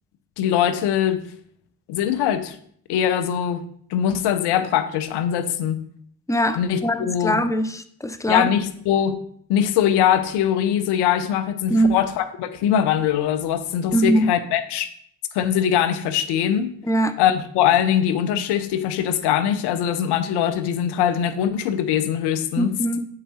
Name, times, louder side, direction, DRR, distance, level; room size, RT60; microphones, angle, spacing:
voice 1, 0.4-1.2 1.9-2.6 2.9-3.6 3.9-5.8 6.5-7.4 8.3-9.2 9.5-14.9 15.3-16.8 17.2-22.7, left 10 dB, 85° left, 12 dB, 0.6 m, -22 dB
voice 2, 6.3-8.5 11.7-12.0 13.9-14.3 16.9-17.1 22.6-23.0, right 1 dB, 10° left, 11 dB, 0.8 m, -21 dB
8.5 x 4.6 x 4.1 m, 0.63 s
supercardioid pair, 45°, 39 cm